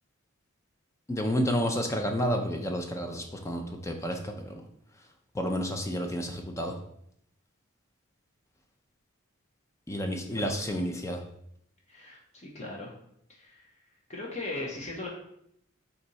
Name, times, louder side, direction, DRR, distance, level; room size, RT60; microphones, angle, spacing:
voice 1, 1.1-4.6 5.3-6.8 9.9-11.2, equal, 15° left, 4 dB, 0.4 m, -30 dB
voice 2, 10.3-10.6 11.9-12.9 13.3-13.7 14.1-15.1, left 2 dB, 35° left, -2 dB, 0.7 m, -38 dB
4.3 x 2.7 x 3.9 m, 0.72 s
head